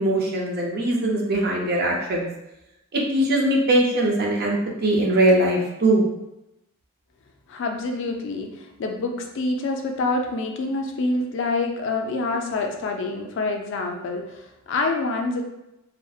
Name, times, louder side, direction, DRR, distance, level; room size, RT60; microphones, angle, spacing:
voice 1, 0.0-2.3 2.9-6.1, right 1 dB, 45° right, -1 dB, 0.4 m, -21 dB
voice 2, 7.5-15.4, left 3 dB, 55° left, 3 dB, 0.3 m, -27 dB
2.7 x 2.0 x 2.3 m, 0.89 s
head